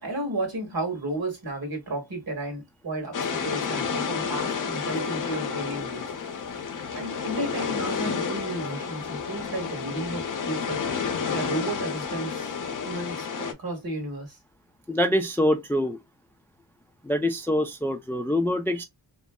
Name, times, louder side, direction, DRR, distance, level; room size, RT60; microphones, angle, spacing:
voice 1, 0.0-6.1 6.9-10.8 11.3-12.6 12.8-14.4, right 2 dB, 55° right, 1.7 m, -33 dB
sound 1, 3.1-13.5, left 6 dB, 45° left, 0.6 m, -30 dB
voice 2, 14.9-16.0 17.0-18.8, left 1 dB, 5° left, 0.4 m, -25 dB
3.1 x 2.6 x 2.2 m
cardioid pair, 55°, 43 cm